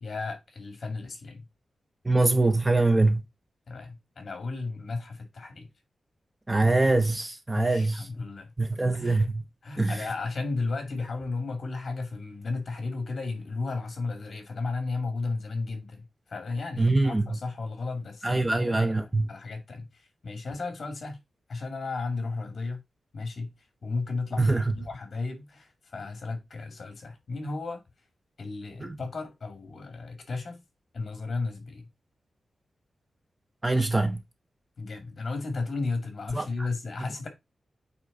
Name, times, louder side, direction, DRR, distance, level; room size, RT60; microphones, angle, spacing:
voice 1, 0.0-1.5 3.7-5.7 7.5-8.5 8.9-9.3 9.6-19.9 20.2-21.2 21.5-22.8 23.1-23.5 23.8-27.8 28.4-30.6 30.9-31.9 34.8-37.3, left 3 dB, 50° left, 2.3 m, -34 dB
voice 2, 2.0-3.2 6.5-8.1 8.6-9.4 9.8-10.1 16.8-17.4 18.2-19.3 24.4-24.7 28.8-29.0 33.6-34.2 36.3-36.5, right 2 dB, 20° right, 0.7 m, -24 dB
8.3 x 3.7 x 3.9 m
wide cardioid pair, 135°, 0 cm